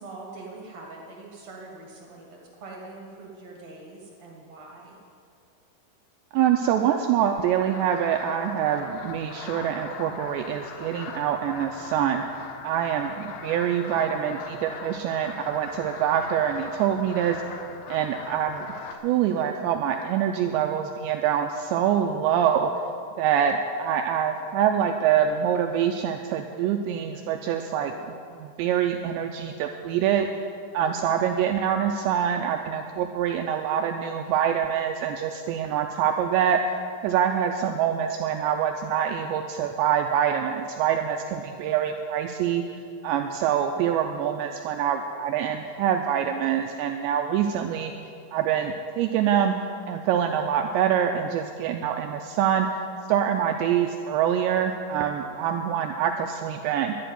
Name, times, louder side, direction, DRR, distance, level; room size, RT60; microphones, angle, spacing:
voice 1, 0.0-5.0, right 3 dB, 55° right, -1 dB, 1.9 m, -43 dB
voice 2, 6.3-12.2 12.6-17.4 17.9-18.7 19.0-22.7 23.2-30.3 30.7-36.6 37.0-42.6 43.0-47.9 48.3-49.6 49.9-52.7 53.1-56.9, right 9 dB, 90° right, 4 dB, 2.5 m, -25 dB
sound 1, 7.7-19.0, left 5 dB, 90° left, 2.1 m, -40 dB
12.0 x 9.0 x 9.4 m, 2.3 s
omnidirectional pair, 5.7 m